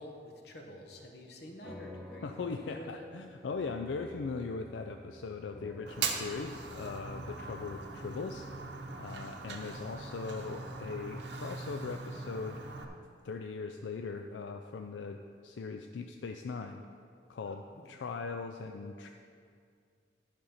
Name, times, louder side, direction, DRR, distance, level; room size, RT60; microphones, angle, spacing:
voice 1, 0.0-3.0 17.5-17.9, left 1 dB, 65° left, 2 dB, 1.2 m, -48 dB
sound 1, 1.6-10.4, left 1 dB, ahead, 0.5 m, -52 dB
voice 2, 2.2-8.5 9.0-12.6 13.2-16.8 17.3-19.1, left 4 dB, 90° left, 5 dB, 0.4 m, -40 dB
Fire, 5.9-12.8, right 4 dB, 75° right, 0.8 m, -40 dB
11.5 x 5.2 x 5.6 m, 2.3 s
head